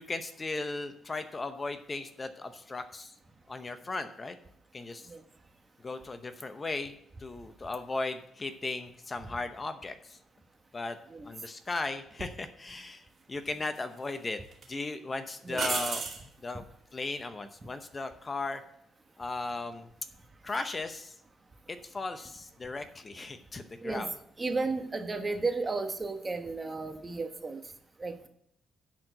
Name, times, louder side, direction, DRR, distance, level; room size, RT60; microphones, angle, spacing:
voice 1, 0.0-3.2 3.5-4.4 4.7-5.1 5.8-10.2 10.7-11.0 11.2-14.4 14.7-16.0 16.4-16.6 16.9-18.6 19.2-19.9 20.4-21.2 21.7-24.1, left 3 dB, 30° left, 8 dB, 0.8 m, -37 dB
sound 1, 12.2-12.4 13.5-14.1 14.5-14.7 15.5-16.3 19.4-19.7, right 4 dB, 50° right, 2.3 m, -34 dB
voice 2, 24.4-27.6 28.0-28.3, right 3 dB, 25° right, 7 dB, 1.2 m, -33 dB
10.0 x 4.5 x 7.8 m, 0.73 s
cardioid pair, 90°, 0 cm